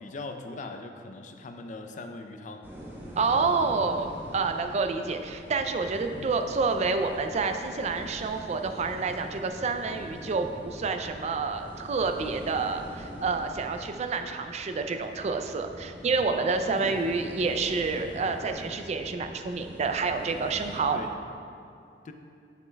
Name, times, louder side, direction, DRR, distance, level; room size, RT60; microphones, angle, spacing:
voice 1, 0.0-2.7 6.1-6.3 16.8-17.0 20.9-21.1 22.0-22.1, left 3 dB, 45° left, 6 dB, 0.4 m, -40 dB
sound 1, 2.6-20.8, equal, 10° right, 0.9 m, -43 dB
voice 2, 3.2-21.0, right 4 dB, 40° right, 7 dB, 0.4 m, -28 dB
9.3 x 5.2 x 2.2 m, 2.4 s
head